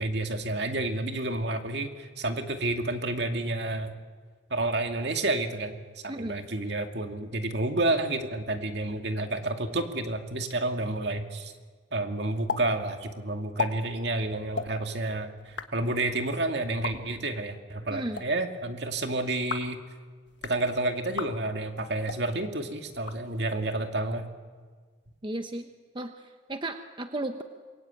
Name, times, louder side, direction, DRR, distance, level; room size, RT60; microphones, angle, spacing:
voice 1, 0.0-3.9 4.5-5.8 6.0-11.5 11.9-19.8 20.4-24.3, right 2 dB, 60° right, 5 dB, 2.4 m, -30 dB
voice 2, 6.1-6.4 17.9-18.2 25.2-25.7 25.9-27.4, right 1 dB, 25° right, 6 dB, 1.0 m, -34 dB
sound 1, 12.5-12.6 12.9-13.0 13.4-13.7 14.5-14.7 15.4-15.7 16.7-16.9 17.9-18.2 19.3-19.7 20.3-20.6 21.1-21.3 22.0-22.2 22.9-23.6, left 5 dB, 70° left, 1.5 m, -35 dB
26.5 x 23.0 x 9.1 m, 1.5 s
head